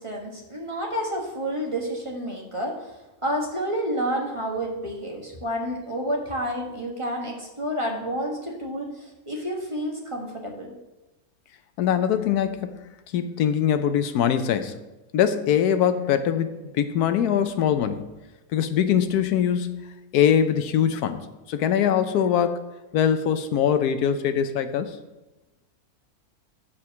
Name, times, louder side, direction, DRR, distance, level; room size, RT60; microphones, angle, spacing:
voice 1, 0.0-2.9 3.2-10.7, equal, 20° right, -1 dB, 1.3 m, -29 dB
voice 2, 11.8-12.8 13.1-14.8 15.1-18.0 18.5-22.6 22.9-24.9, left 8 dB, 90° left, 10 dB, 1.2 m, -22 dB
7.1 x 5.0 x 7.2 m, 1.0 s
omnidirectional pair, 1.6 m